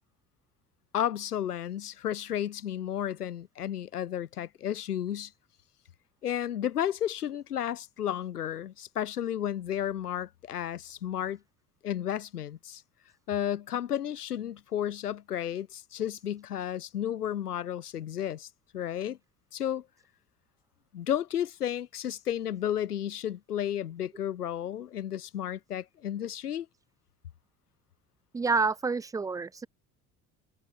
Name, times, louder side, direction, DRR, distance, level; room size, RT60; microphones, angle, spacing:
voice 1, 0.9-5.3 6.2-11.4 11.8-12.8 13.3-18.5 18.7-19.2 19.5-19.8 20.9-26.7, left 10 dB, 80° left, 2.7 m, -32 dB
voice 2, 28.3-29.7, right 4 dB, 10° right, 0.3 m, -28 dB
figure-of-eight pair, 55°, 46 cm